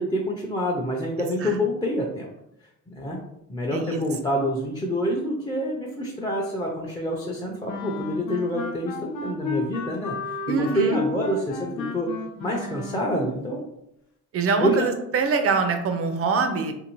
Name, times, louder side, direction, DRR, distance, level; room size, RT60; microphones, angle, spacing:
voice 1, 0.0-2.3 2.9-3.2 3.5-12.1 12.4-13.6 14.6-14.9, equal, 15° left, -3 dB, 0.5 m, -27 dB
voice 2, 3.7-4.0 10.5-11.0 14.3-16.7, right 4 dB, 50° right, 7 dB, 0.5 m, -24 dB
sound 1, 7.6-13.3, left 4 dB, 85° left, 0.6 m, -33 dB
2.6 x 2.6 x 3.0 m, 0.81 s
cardioid pair, 90°, 30 cm